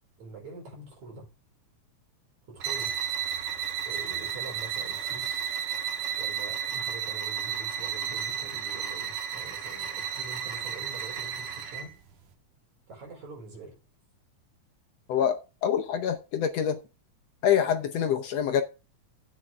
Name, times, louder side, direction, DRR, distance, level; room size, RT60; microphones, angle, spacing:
voice 1, 0.2-1.3 2.5-2.9 3.8-5.4 6.2-11.9 12.9-13.8, right 3 dB, 65° right, 6.1 m, -45 dB
sound 1, 2.6-11.9, right 8 dB, 85° right, 3.1 m, -33 dB
voice 2, 15.1-16.8 17.4-18.6, left 9 dB, 70° left, 1.8 m, -26 dB
12.0 x 8.8 x 3.4 m
omnidirectional pair, 3.4 m